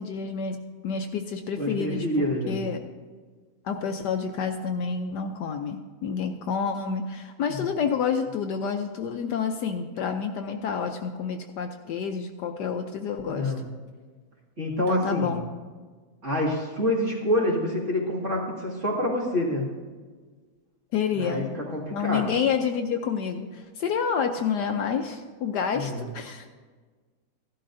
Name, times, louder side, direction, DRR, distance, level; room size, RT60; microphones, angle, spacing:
voice 1, 0.0-2.8 3.6-13.5 14.9-15.4 20.9-21.5 21.9-26.5, left 6 dB, 70° left, 5 dB, 1.1 m, -29 dB
voice 2, 1.6-2.6 7.5-7.6 13.3-13.6 14.6-15.3 16.2-19.7 21.2-22.3 25.8-26.0, left 1 dB, 40° right, -3 dB, 2.3 m, -27 dB
15.5 x 11.5 x 2.6 m, 1.4 s
omnidirectional pair, 2.0 m